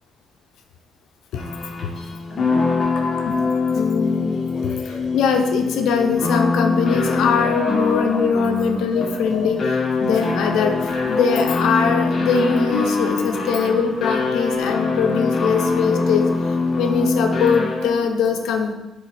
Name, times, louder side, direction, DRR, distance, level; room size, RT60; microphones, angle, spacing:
sound 1, 1.4-18.1, left 4 dB, 45° left, 1.8 m, -23 dB
voice 1, 2.9-3.4 3.7-16.3 16.8-18.7, left 5 dB, 85° left, 4 dB, 0.8 m, -21 dB
10.0 x 3.5 x 5.0 m, 1.0 s
cardioid pair, 90°, 0 cm